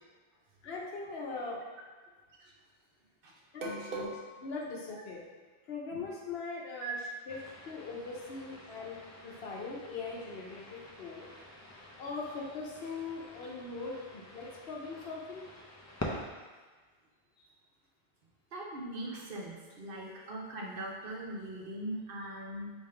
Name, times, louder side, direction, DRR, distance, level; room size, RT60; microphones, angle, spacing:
voice 1, 0.6-1.6 3.5-4.0 4.4-5.2 5.7-7.0 7.3-7.4 7.7-11.3 12.0-15.4, left 4 dB, 80° left, -2 dB, 1.0 m, -41 dB
voice 2, 3.6-4.1 4.9-5.0 5.9-6.0 6.8-6.9 18.5-22.7, right 2 dB, 65° right, -2 dB, 0.9 m, -40 dB
sound 1, 7.3-16.3, left 1 dB, 30° left, 0.3 m, -47 dB
3.5 x 2.7 x 4.4 m, 1.4 s
omnidirectional pair, 1.0 m